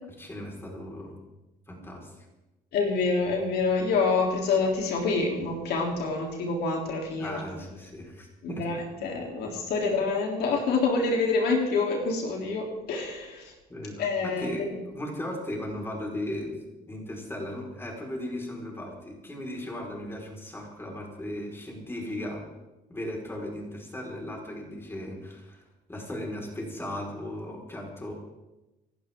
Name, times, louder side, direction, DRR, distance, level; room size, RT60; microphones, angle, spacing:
voice 1, 0.2-1.2 1.7-2.1 7.2-9.0 13.7-16.5 16.8-22.4 22.9-25.6 25.9-28.1, left 1 dB, 15° left, -1 dB, 4.9 m, -37 dB
voice 2, 2.7-7.4 8.4-13.5 14.0-14.7, left 4 dB, 70° left, 0 dB, 3.5 m, -27 dB
26.5 x 12.0 x 3.8 m, 1.0 s
cardioid pair, 110°, 17 cm